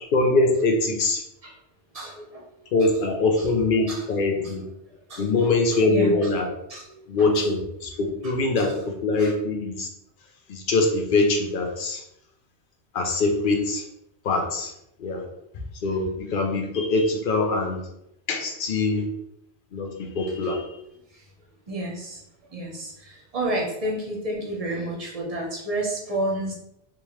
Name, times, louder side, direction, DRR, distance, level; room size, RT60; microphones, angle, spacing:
voice 1, 0.1-1.2 2.7-4.6 5.2-6.5 7.1-8.7 9.0-9.9 10.5-12.0 12.9-13.8 14.2-14.7 15.0-15.2 15.8-17.8 18.3-19.0 19.7-20.6, left 3 dB, 50° left, 2 dB, 0.8 m, -23 dB
voice 2, 1.9-2.4 2.8-2.9 3.4-3.5 3.9-4.1 4.3-4.6 5.1-6.3 6.7-7.5 8.2-8.7 9.2-9.3 20.3-20.5 21.1-21.2 21.7-22.2 22.5-26.5, right 1 dB, 35° right, -2 dB, 0.9 m, -31 dB
3.4 x 3.0 x 3.1 m, 0.80 s
omnidirectional pair, 1.3 m